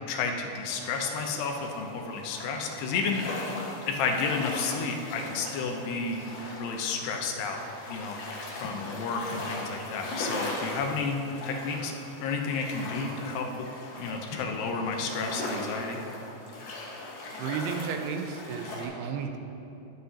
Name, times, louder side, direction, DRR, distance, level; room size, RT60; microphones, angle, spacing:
voice 1, 0.1-3.2 3.9-6.2 6.6-7.6 7.9-8.2 8.6-11.9 12.2-13.7 14.0-16.0, left 4 dB, 80° left, 3 dB, 3.0 m, -31 dB
sound 1, 0.7-18.9, left 2 dB, 65° left, 3.2 m, -39 dB
voice 2, 17.4-19.4, right 6 dB, 80° right, 5 dB, 2.5 m, -33 dB
21.0 x 7.9 x 2.9 m, 2.8 s
omnidirectional pair, 4.8 m